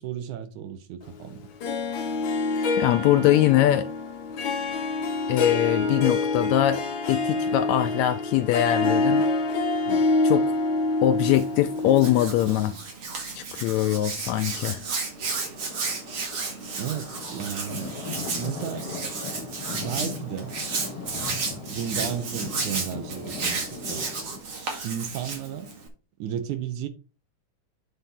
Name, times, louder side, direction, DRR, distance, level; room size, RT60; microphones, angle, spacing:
voice 1, 0.0-1.4 9.9-10.0 16.8-17.9 18.4-18.9 19.7-20.5 21.7-24.1 24.8-25.7 26.2-26.9, right 9 dB, 75° right, 2.4 m, -33 dB
Harp, 1.6-12.7, left 3 dB, 60° left, 1.3 m, -26 dB
voice 2, 2.8-3.9 5.3-9.2 10.2-10.5 11.0-12.8 13.3-14.8, left 13 dB, 80° left, 1.6 m, -22 dB
sound 1, 9.2-9.3 9.5-9.6 10.2-10.8 11.6-11.7 11.9-12.0 12.3-13.4 13.8-24.4, left 4 dB, 45° left, 2.4 m, -39 dB
Hands, 11.2-25.9, right 4 dB, 50° right, 2.8 m, -33 dB
8.2 x 4.3 x 5.5 m
omnidirectional pair, 3.6 m